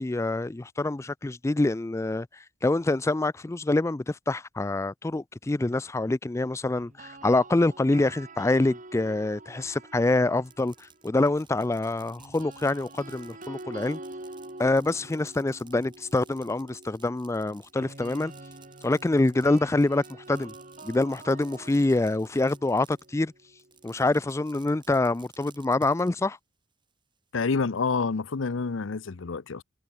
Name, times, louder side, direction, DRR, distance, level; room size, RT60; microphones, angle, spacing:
voice 1, 0.0-14.0 14.6-18.3 18.8-20.5 20.8-23.3 23.8-26.4, left 2 dB, 15° left, 0.4 m, -26 dB
sound 1, 6.8-11.0 12.2-24.1, right 2 dB, 45° right, 4.0 m, -46 dB
Fireworks, 10.3-23.2 23.6-26.1, right 7 dB, 25° right, 2.9 m, -56 dB
voice 2, 27.3-29.6, left 4 dB, 85° left, 0.7 m, -28 dB
head